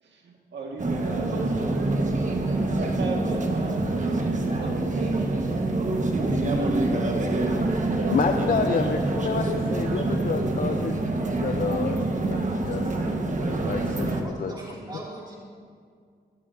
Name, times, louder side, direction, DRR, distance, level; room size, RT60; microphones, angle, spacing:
voice 1, 0.0-2.0 2.3-5.5 6.8-7.7 8.1-10.0, right 3 dB, 85° right, 0 dB, 1.8 m, -38 dB
sound 1, 0.8-14.2, right 2 dB, 45° right, 1.4 m, -26 dB
voice 2, 8.1-12.8 13.7-14.5, left 5 dB, 55° left, 6 dB, 0.6 m, -29 dB
voice 3, 14.0-15.4, right 2 dB, 25° right, -4 dB, 2.5 m, -41 dB
15.5 x 13.0 x 2.7 m, 2.1 s
cardioid pair, 70°, 18 cm